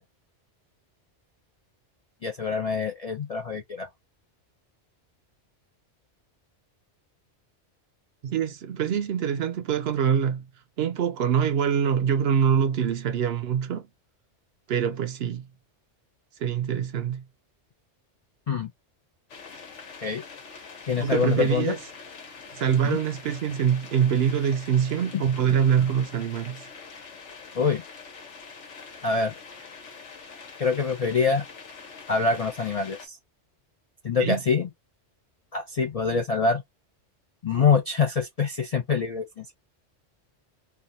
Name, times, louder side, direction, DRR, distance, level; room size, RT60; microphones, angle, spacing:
voice 1, 2.2-3.9 18.5-18.7 20.0-20.2 20.9-21.7 22.8-23.0 25.1-25.2 27.5-27.8 29.0-29.3 30.6-31.4 32.1-33.2 34.0-34.7 35.5-36.6 37.4-39.5, left 5 dB, 55° left, 0.4 m, -25 dB
voice 2, 8.2-10.5 10.8-13.8 14.7-15.5 16.4-17.2 21.0-21.8 22.6-26.6 34.2-34.4, right 8 dB, 65° right, 0.7 m, -24 dB
sound 1, 19.3-33.1, left 5 dB, 85° left, 1.3 m, -44 dB
3.3 x 2.4 x 2.6 m
omnidirectional pair, 1.2 m